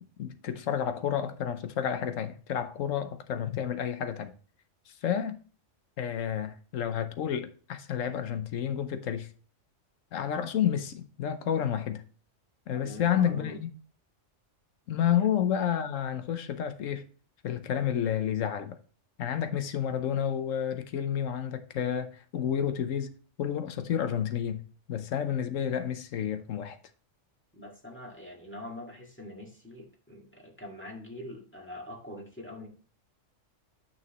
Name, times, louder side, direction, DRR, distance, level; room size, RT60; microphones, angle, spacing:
voice 1, 0.2-4.3 4.9-5.4 6.0-9.3 10.1-12.0 12.7-13.7 14.9-17.1 17.4-18.8 19.2-24.6 24.9-26.8, left 9 dB, 85° left, 1.2 m, -30 dB
voice 2, 12.7-13.6 15.1-15.3 27.5-32.7, left 1 dB, 10° left, 1.8 m, -44 dB
9.5 x 6.0 x 3.0 m
omnidirectional pair, 1.3 m